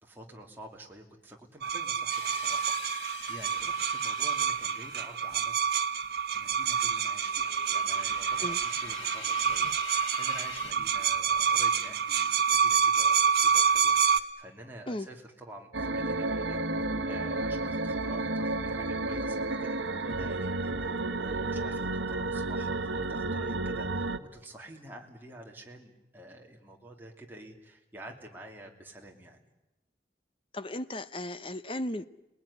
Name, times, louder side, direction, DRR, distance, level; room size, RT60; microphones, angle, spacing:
voice 1, 0.0-5.6 6.3-29.4, right 1 dB, 10° right, 0 dB, 2.9 m, -49 dB
sound 1, 1.6-14.2, right 7 dB, 55° right, 1.3 m, -27 dB
sound 2, 2.1-10.7, left 7 dB, 90° left, 1.5 m, -46 dB
sound 3, 15.7-24.2, right 2 dB, 90° right, 1.3 m, -31 dB
voice 2, 30.5-32.1, left 1 dB, 30° left, 13 dB, 0.9 m, -35 dB
30.0 x 20.0 x 10.0 m, 0.98 s
head